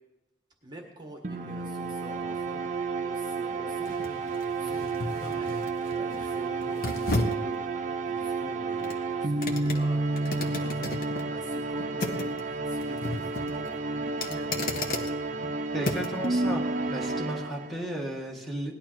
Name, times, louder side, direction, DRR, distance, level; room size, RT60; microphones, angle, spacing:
voice 1, 0.6-2.7 3.0-10.9 11.3-14.6, right 1 dB, 25° right, 1 dB, 1.6 m, -46 dB
sound 1, 1.2-18.0, right 3 dB, 40° right, 0.7 m, -31 dB
sound 2, 1.6-16.3 16.7-16.9, left 2 dB, 50° left, 1.5 m, -36 dB
voice 2, 15.7-16.6 16.9-18.8, right 1 dB, ahead, -2 dB, 1.8 m, -34 dB
18.5 x 11.5 x 4.6 m, 0.99 s
head